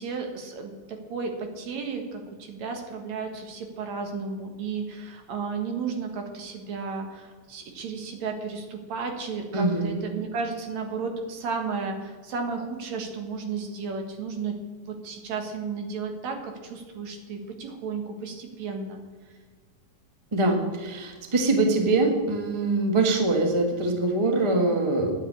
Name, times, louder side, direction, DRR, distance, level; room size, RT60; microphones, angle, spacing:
voice 1, 0.0-14.6 14.9-19.0, right 5 dB, 70° right, 4 dB, 2.8 m, -33 dB
voice 2, 9.5-9.9 20.3-25.1, right 2 dB, 20° right, 3 dB, 0.8 m, -23 dB
10.0 x 7.9 x 8.7 m, 1.5 s
omnidirectional pair, 3.4 m